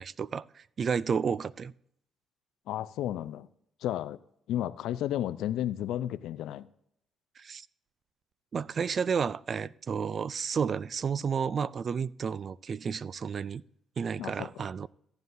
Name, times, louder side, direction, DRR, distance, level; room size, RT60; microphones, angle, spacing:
voice 1, 0.0-1.7 7.4-7.7 8.5-13.6 14.0-14.9, right 6 dB, 45° right, 0.3 m, -31 dB
voice 2, 2.7-3.5 3.8-4.2 4.5-6.7 14.2-14.5, left 12 dB, 85° left, 0.4 m, -32 dB
14.5 x 9.2 x 2.6 m
cardioid pair, 90°, 0 cm